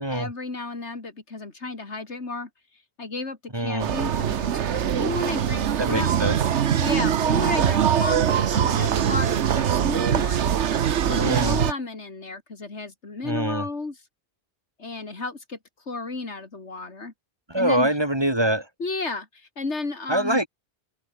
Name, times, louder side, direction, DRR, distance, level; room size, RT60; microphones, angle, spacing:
voice 1, 0.0-2.5 3.0-6.1 6.8-10.6 11.0-14.0 14.8-15.6 15.9-17.1 17.6-17.9 18.8-20.4, left 3 dB, 80° left, 3.3 m, -33 dB
voice 2, 3.5-3.9 5.8-6.4 11.2-11.6 13.2-13.6 17.5-18.7 20.1-20.5, right 1 dB, 20° right, 4.6 m, -24 dB
sound 1, 3.8-11.7, right 9 dB, 85° right, 1.2 m, -22 dB
open air
omnidirectional pair, 1.1 m